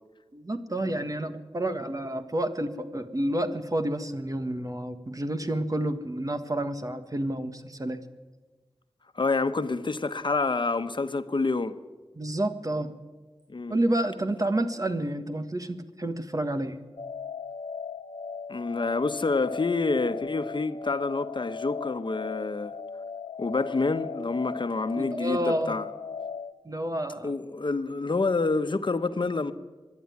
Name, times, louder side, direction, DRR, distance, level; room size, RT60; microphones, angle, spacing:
voice 1, 0.3-8.0 12.2-12.9 13.7-16.8 25.0-25.7 26.6-27.3, right 1 dB, 40° right, 1.6 m, -29 dB
voice 2, 9.1-11.8 13.5-13.8 18.5-22.7 23.4-25.9 27.2-29.5, left 3 dB, 55° left, 1.1 m, -28 dB
sound 1, 17.0-26.5, left 6 dB, 80° left, 1.1 m, -38 dB
24.5 x 11.0 x 9.5 m
wide cardioid pair, 65°, 9 cm